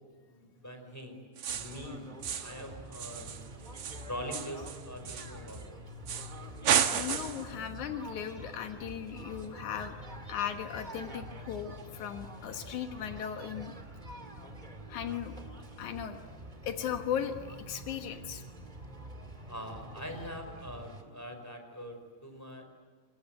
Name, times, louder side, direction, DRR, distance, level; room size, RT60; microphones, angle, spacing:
voice 1, 0.2-1.2 1.5-2.1 2.4-3.4 4.1-5.8 19.5-22.6, equal, 5° left, 5 dB, 4.7 m, -43 dB
sound 1, 1.4-1.8 2.2-2.6 2.9-5.6 6.1-6.3 6.6-7.5, right 8 dB, 60° right, 2.1 m, -32 dB
sound 2, 1.5-21.0, right 1 dB, 15° right, 1.9 m, -46 dB
voice 2, 6.9-10.0 10.3-13.7 14.9-15.4 15.8-16.2 16.6-18.4, left 9 dB, 85° left, 6 dB, 2.9 m, -37 dB
27.0 x 22.0 x 9.2 m, 1.5 s
omnidirectional pair, 3.3 m